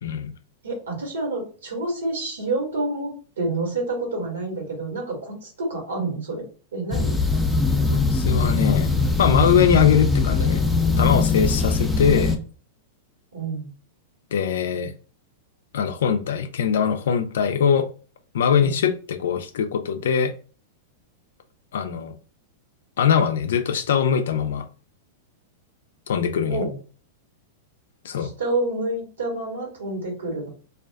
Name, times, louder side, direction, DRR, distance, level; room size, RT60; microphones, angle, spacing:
voice 1, 0.0-0.3 7.9-10.6 11.0-12.4 14.3-14.9 15.7-17.9 18.3-20.3 21.7-22.1 23.0-24.7 26.1-26.6 28.0-28.3, left 7 dB, 75° left, 8 dB, 0.4 m, -22 dB
voice 2, 0.6-6.4 6.7-7.2 13.3-13.7 18.6-18.8 26.5-26.7 28.2-30.5, right 2 dB, 80° right, 0 dB, 1.3 m, -28 dB
sound 1, 6.9-12.4, left 3 dB, 5° left, 0.5 m, -21 dB
2.4 x 2.4 x 2.3 m, 0.39 s
hypercardioid pair, 105°, 0 cm